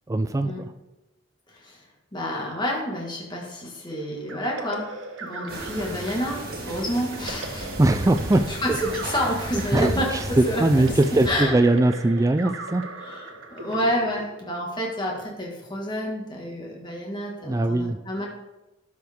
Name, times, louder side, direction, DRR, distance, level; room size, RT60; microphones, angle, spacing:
voice 1, 0.1-0.7 7.8-8.8 9.5-12.8 17.4-18.0, right 2 dB, 15° right, 10 dB, 0.3 m, -21 dB
voice 2, 2.1-4.8 5.2-7.7 8.5-10.6 11.3-11.6 13.0-18.3, equal, 25° left, -2 dB, 1.8 m, -29 dB
sound 1, 4.3-14.9, right 3 dB, 90° right, 1.1 m, -39 dB
sound 2, 5.5-11.3, right 1 dB, 50° right, 2.1 m, -35 dB
12.5 x 6.1 x 3.6 m, 0.95 s
head